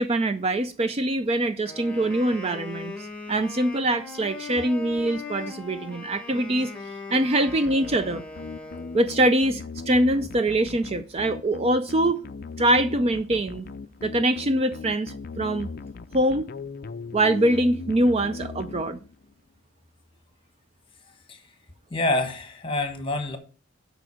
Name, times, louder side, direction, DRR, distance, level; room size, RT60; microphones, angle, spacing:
voice 1, 0.0-8.2 8.9-12.2 12.6-13.7 14.0-15.7 16.1-16.5 17.1-19.0, right 1 dB, 25° right, 0.4 m, -24 dB
Wind instrument woodwind instrument, 1.7-9.3, left 3 dB, 5° left, 2.0 m, -39 dB
sound 1, 7.5-19.3, left 4 dB, 40° left, 0.4 m, -38 dB
voice 2, 21.9-23.4, left 2 dB, 25° left, 1.4 m, -27 dB
8.0 x 5.1 x 6.4 m
head